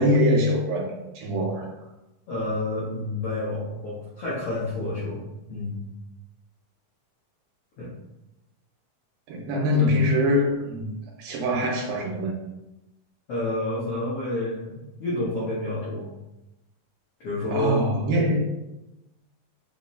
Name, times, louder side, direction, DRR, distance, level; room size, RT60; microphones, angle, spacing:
voice 1, 0.0-1.7 9.3-10.9 11.2-12.3 17.5-18.4, left 1 dB, 85° right, -1 dB, 2.5 m, -23 dB
voice 2, 2.3-5.2 5.5-5.8 7.8-7.9 9.8-9.9 13.3-16.1 17.2-17.8, left 1 dB, 85° left, -8 dB, 1.2 m, -29 dB
5.7 x 2.0 x 2.6 m, 0.95 s
omnidirectional pair, 4.0 m